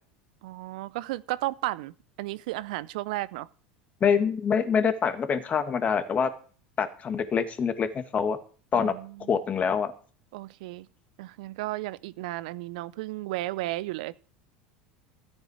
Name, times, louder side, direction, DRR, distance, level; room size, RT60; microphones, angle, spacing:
voice 1, 0.4-3.5 8.7-9.3 10.3-10.9 11.2-14.1, right 18 dB, 70° right, 0.5 m, -34 dB
voice 2, 4.0-6.3 6.8-8.4 8.7-8.9 9.3-9.9, left 6 dB, 35° left, 1.9 m, -25 dB
13.5 x 8.8 x 4.9 m
hypercardioid pair, 80°, 4 cm